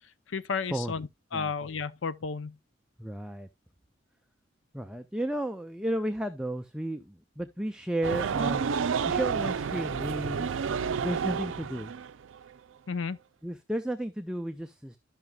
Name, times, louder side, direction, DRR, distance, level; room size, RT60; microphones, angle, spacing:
voice 1, 0.3-2.6 12.9-13.2, left 5 dB, 80° left, 0.6 m, -33 dB
voice 2, 3.0-3.5 4.7-8.7 9.0-11.9 13.4-15.0, right 1 dB, 5° right, 0.4 m, -33 dB
sound 1, 8.0-12.5, right 6 dB, 90° right, 0.4 m, -30 dB
12.5 x 5.8 x 2.3 m
head